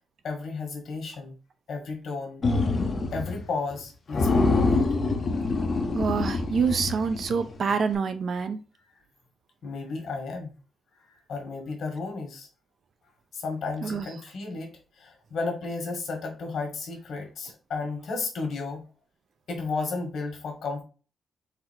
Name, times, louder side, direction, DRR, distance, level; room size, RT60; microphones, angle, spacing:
voice 1, 0.2-1.4 1.7-2.4 3.1-4.9 8.8-8.9 9.6-10.6 11.0-12.5 13.3-18.8 19.5-20.8, left 4 dB, 60° left, 1.5 m, -33 dB
sound 1, 2.4-3.4 3.7-3.8 4.1-7.5, left 3 dB, 35° left, 0.7 m, -25 dB
voice 2, 5.9-8.6 13.8-14.1, right 5 dB, 45° right, 0.5 m, -26 dB
4.0 x 2.7 x 4.3 m
wide cardioid pair, 175°, 0 cm